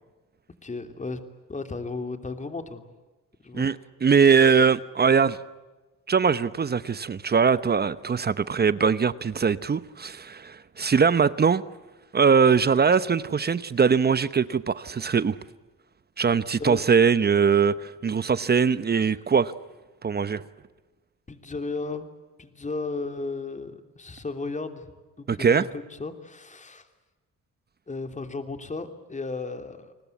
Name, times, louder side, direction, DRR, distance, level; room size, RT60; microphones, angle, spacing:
voice 1, 0.6-1.2 1.5-2.8 3.4-3.7 4.2-4.6 16.6-16.8 21.3-22.1 22.4-24.8 25.2-26.9 27.9-29.9, left 3 dB, 25° left, 8 dB, 3.1 m, -34 dB
voice 2, 4.0-5.4 6.1-11.6 12.1-15.4 16.2-19.5 20.0-20.4 25.3-25.6, right 6 dB, 35° right, 15 dB, 0.9 m, -21 dB
29.5 x 20.0 x 8.3 m, 1.2 s
cardioid pair, 90°, 30 cm